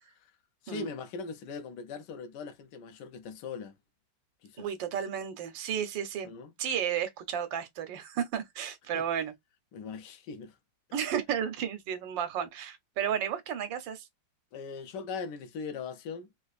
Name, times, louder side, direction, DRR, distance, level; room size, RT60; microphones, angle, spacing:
voice 1, 0.6-3.8 4.4-4.7 6.2-6.5 9.7-10.6 14.5-16.3, left 5 dB, 75° left, 1.2 m, -40 dB
voice 2, 4.6-6.3 6.6-9.3 10.9-14.1, right 8 dB, 85° right, 1.4 m, -33 dB
3.7 x 2.4 x 2.3 m
omnidirectional pair, 2.0 m